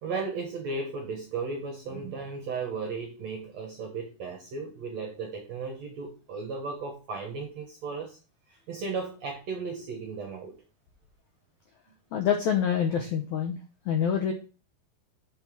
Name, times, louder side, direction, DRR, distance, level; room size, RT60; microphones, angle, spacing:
voice 1, 0.0-8.2 8.5-10.6, right 4 dB, 65° right, 3 dB, 1.7 m, -35 dB
voice 2, 12.1-13.6 13.8-14.3, left 8 dB, 80° left, 3 dB, 1.7 m, -26 dB
5.7 x 5.7 x 5.9 m, 0.34 s
omnidirectional pair, 4.5 m